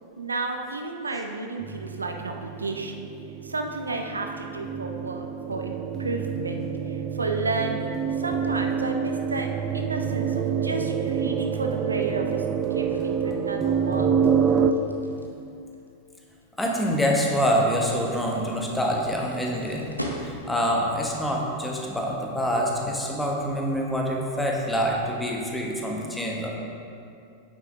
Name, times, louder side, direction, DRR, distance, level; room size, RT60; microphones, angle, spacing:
voice 1, 0.2-3.1 3.4-9.5 9.7-12.4 12.7-14.1, right 3 dB, 75° right, 4 dB, 0.6 m, -32 dB
sound 1, 1.6-14.7, right 7 dB, 25° right, 0.4 m, -27 dB
sound 2, 10.4-20.7, equal, 90° left, 0.9 m, -43 dB
voice 2, 16.6-19.8 20.2-26.5, equal, 5° left, -1 dB, 1.2 m, -26 dB
9.0 x 7.3 x 3.5 m, 2.5 s
figure-of-eight pair, 90°, 0 cm